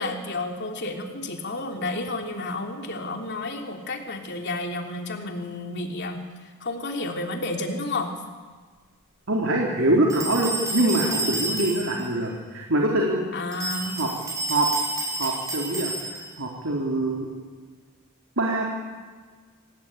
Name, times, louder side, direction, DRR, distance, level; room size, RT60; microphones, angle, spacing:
voice 1, 0.0-6.2 6.6-8.1 13.3-14.0, left 2 dB, 50° left, 3 dB, 3.3 m, -31 dB
voice 2, 9.3-13.2 14.0-14.1 14.5-14.7 15.2-17.3 18.4-18.6, right 1 dB, 60° right, -1 dB, 3.5 m, -24 dB
sound 1, 10.1-12.1 13.5-16.4, right 2 dB, 15° right, 6.3 m, -30 dB
27.0 x 18.5 x 9.1 m, 1.5 s
head